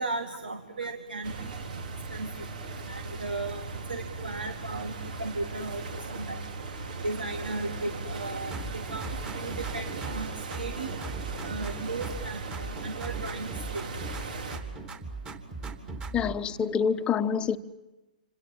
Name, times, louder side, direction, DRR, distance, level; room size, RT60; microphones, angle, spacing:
voice 1, 0.0-1.5 2.1-2.3 2.9-3.6 3.9-4.9 5.2-6.4 7.0-9.1 9.3-11.0 11.4-13.5 13.7-13.9, right 3 dB, 90° right, 6 dB, 2.3 m, -35 dB
sound 1, 1.2-14.6, right 3 dB, 65° right, 5.3 m, -38 dB
sound 2, 8.5-10.3 10.5-12.3 12.5-14.3 14.5-16.4, right 4 dB, 20° right, 3.3 m, -38 dB
voice 2, 16.1-17.6, left 7 dB, 20° left, 10 dB, 1.2 m, -26 dB
27.5 x 26.5 x 7.5 m, 1.1 s
hypercardioid pair, 130°, 5 cm